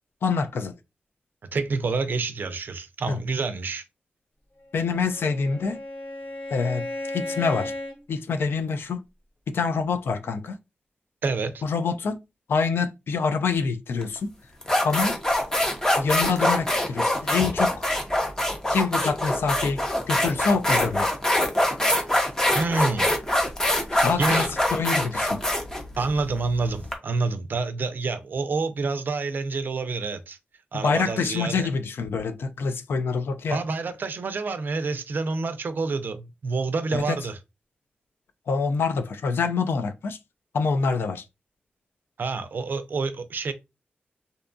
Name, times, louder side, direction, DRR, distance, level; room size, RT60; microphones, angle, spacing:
voice 1, 0.2-0.7 3.1-3.2 4.7-5.8 6.5-7.7 8.1-9.0 9.5-10.6 11.6-12.2 12.5-14.3 14.8-15.2 16.0-17.8 18.7-21.1 24.0-25.5 30.7-33.6 36.9-37.2 38.5-40.2 40.5-41.3, left 5 dB, 80° left, 0.3 m, -26 dB
voice 2, 1.5-3.8 11.2-11.6 22.5-23.1 23.9-24.5 26.0-30.4 30.7-31.7 33.5-37.4 42.2-43.5, right 4 dB, 60° right, 0.4 m, -28 dB
Bowed string instrument, 4.8-8.0, left 1 dB, 55° left, 0.8 m, -35 dB
sound 1, 14.0-14.2 14.6-26.9, left 1 dB, 15° left, 0.6 m, -24 dB
2.6 x 2.2 x 2.5 m
wide cardioid pair, 115°, 4 cm